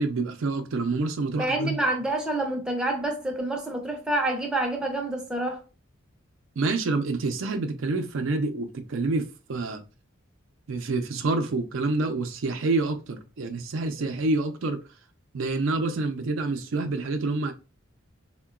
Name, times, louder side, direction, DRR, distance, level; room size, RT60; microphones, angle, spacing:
voice 1, 0.0-1.8 6.6-9.8 10.7-14.8 15.3-17.5, right 3 dB, 70° right, 0.4 m, -27 dB
voice 2, 1.3-5.6, right 1 dB, 5° right, 0.5 m, -27 dB
3.7 x 2.2 x 2.3 m
head